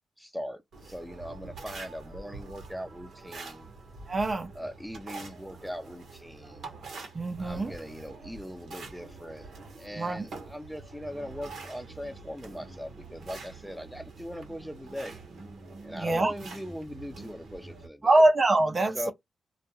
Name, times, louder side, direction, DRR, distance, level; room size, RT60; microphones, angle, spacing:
voice 1, 0.2-3.7 4.5-6.7 7.4-9.5 9.8-15.2 15.8-18.2 18.9-19.1, equal, ahead, 0.6 m, -40 dB
sound 1, 0.7-17.9, right 3 dB, 75° right, 0.9 m, -45 dB
voice 2, 4.1-4.5 7.1-7.7 9.9-10.2 15.9-16.3 18.0-19.1, right 2 dB, 45° right, 0.6 m, -24 dB
2.3 x 2.2 x 2.9 m
supercardioid pair, 45°, 0 cm